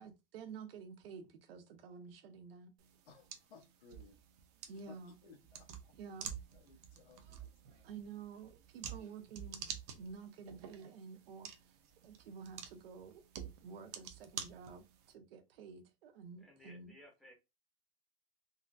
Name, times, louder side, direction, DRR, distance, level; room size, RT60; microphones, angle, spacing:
voice 1, 0.0-2.7 4.7-5.1 6.0-6.3 7.8-9.6 9.9-11.8 12.0-13.2 13.6-16.9, right 5 dB, 75° right, 0.9 m, -50 dB
sound 1, 2.8-15.1, right 8 dB, 45° right, 0.6 m, -50 dB
voice 2, 3.0-4.2 4.7-5.9 6.5-7.8 8.8-9.2 9.5-9.6, left 5 dB, 75° left, 1.0 m, -61 dB
voice 3, 16.4-17.3, left 1 dB, ahead, 0.4 m, -58 dB
3.8 x 2.1 x 2.6 m
supercardioid pair, 170°, 29 cm